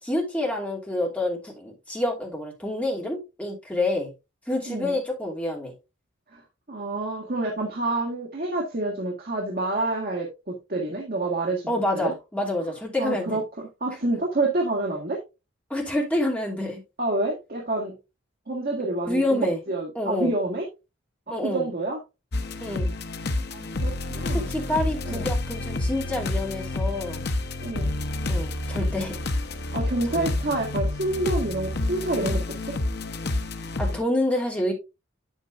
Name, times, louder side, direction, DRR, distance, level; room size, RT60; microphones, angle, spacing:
voice 1, 0.0-4.1 4.5-5.7 11.7-13.4 15.7-16.8 19.0-19.6 19.9-20.3 21.3-21.7 22.6-22.9 24.3-27.3 28.3-29.2 30.1-30.6 33.8-34.7, left 1 dB, 5° left, 2.7 m, -28 dB
voice 2, 6.7-12.1 13.0-13.4 13.8-15.2 17.0-17.9 18.5-20.7 21.3-22.0 23.5-24.5 25.0-25.2 27.6-27.9 29.7-32.7, right 2 dB, 50° right, 1.7 m, -28 dB
sound 1, 22.3-34.0, left 2 dB, 55° left, 0.8 m, -29 dB
8.6 x 8.2 x 2.5 m
head